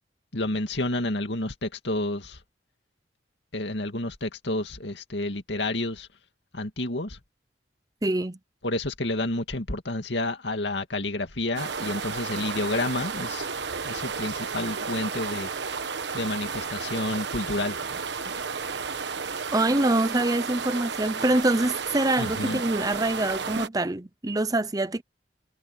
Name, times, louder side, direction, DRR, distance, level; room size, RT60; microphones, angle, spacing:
voice 1, 0.3-2.4 3.5-6.1 6.5-7.2 8.6-13.5 13.8-15.5 16.1-17.8 22.2-22.6, left 2 dB, 75° left, 2.3 m, -30 dB
voice 2, 8.0-8.4 19.5-25.0, right 2 dB, 20° right, 0.8 m, -25 dB
sound 1, 11.6-23.7, right 5 dB, 75° right, 1.3 m, -32 dB
head